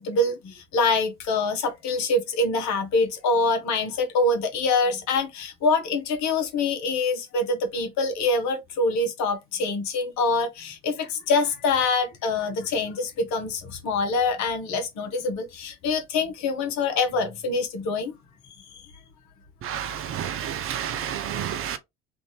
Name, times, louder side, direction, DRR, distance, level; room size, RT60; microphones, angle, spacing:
voice 1, 0.0-18.1 18.7-18.8, left 3 dB, 50° left, 1.1 m, -25 dB
voice 2, 19.6-21.8, right 9 dB, 40° right, 0.6 m, -30 dB
3.4 x 2.6 x 3.0 m
figure-of-eight pair, 65°, 36 cm